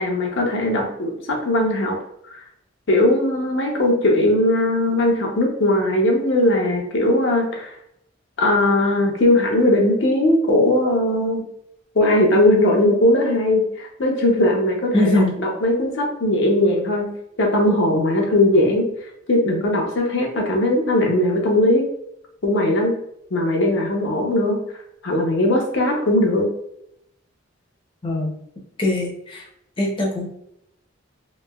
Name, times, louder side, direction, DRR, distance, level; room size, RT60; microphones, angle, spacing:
voice 1, 0.0-2.0 2.9-7.7 8.4-11.4 12.0-15.1 15.4-18.9 19.3-21.9 22.4-23.0 23.3-24.6 25.0-26.5, left 1 dB, 65° left, 0 dB, 0.6 m, -19 dB
voice 2, 14.9-15.3 28.0-28.3 28.8-29.5 29.8-30.3, left 1 dB, 25° left, -2 dB, 0.6 m, -21 dB
3.1 x 2.7 x 2.2 m, 0.75 s
head